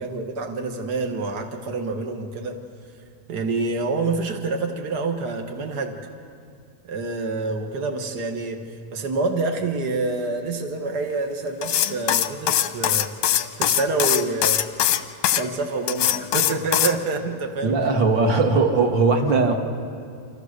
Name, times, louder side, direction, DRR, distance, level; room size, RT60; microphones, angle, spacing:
voice 1, 0.0-2.6 3.3-6.0 6.9-8.7 8.9-14.6 15.4-17.8, right 3 dB, 70° right, 4 dB, 0.9 m, -27 dB
sound 1, 11.6-15.4 15.9-17.0, left 12 dB, 70° left, 1.8 m, -21 dB
voice 2, 17.6-19.6, right 3 dB, 40° right, 4 dB, 2.0 m, -19 dB
28.5 x 27.0 x 6.7 m, 2.4 s
omnidirectional pair, 4.2 m